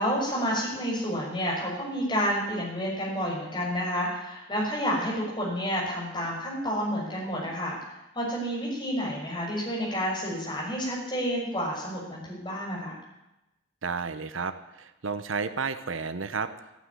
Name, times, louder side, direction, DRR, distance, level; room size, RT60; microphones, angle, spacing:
voice 1, 0.0-7.8 8.1-12.9, equal, 25° left, -4 dB, 6.1 m, -30 dB
voice 2, 13.8-16.5, right 5 dB, 85° right, 11 dB, 1.0 m, -32 dB
14.0 x 9.3 x 9.7 m, 0.93 s
head